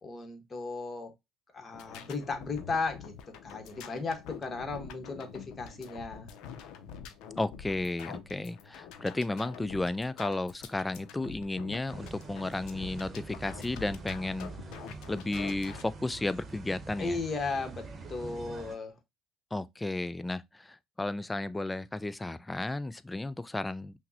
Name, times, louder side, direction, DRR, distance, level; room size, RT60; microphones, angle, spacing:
voice 1, 0.0-1.1 1.5-3.1 3.4-6.3 17.0-18.9, left 3 dB, 30° left, 1.1 m, -35 dB
sound 1, 1.7-15.8, left 8 dB, 70° left, 0.5 m, -46 dB
voice 2, 7.4-14.5 15.1-17.2 19.5-23.9, left 2 dB, 15° left, 0.4 m, -33 dB
sound 2, 11.9-18.7, right 3 dB, 35° right, 0.9 m, -45 dB
5.7 x 2.1 x 2.6 m
hypercardioid pair, 70°, 0 cm